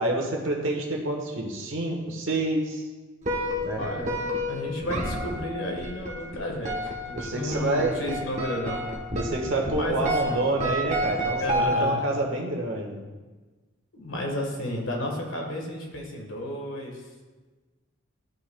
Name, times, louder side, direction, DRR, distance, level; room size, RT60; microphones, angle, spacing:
voice 1, 0.0-2.9 3.6-3.9 7.1-8.0 9.1-13.0, right 2 dB, 65° right, 0 dB, 1.3 m, -28 dB
sound 1, 3.2-12.2, equal, 35° right, 1.0 m, -30 dB
voice 2, 3.8-8.9 9.7-10.4 11.4-12.0 13.9-17.1, left 1 dB, 70° left, 0 dB, 1.4 m, -32 dB
12.5 x 5.6 x 2.2 m, 1.3 s
head